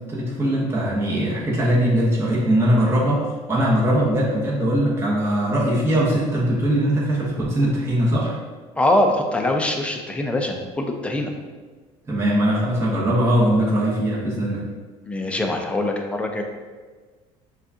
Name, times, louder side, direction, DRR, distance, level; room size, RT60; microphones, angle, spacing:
voice 1, 0.1-3.2 3.5-8.3 12.1-14.6, right 1 dB, 15° right, -6 dB, 1.1 m, -20 dB
voice 2, 8.8-11.3 15.1-16.4, left 1 dB, 10° left, 2 dB, 0.5 m, -23 dB
6.3 x 2.4 x 2.8 m, 1.4 s
supercardioid pair, 105°, 14 cm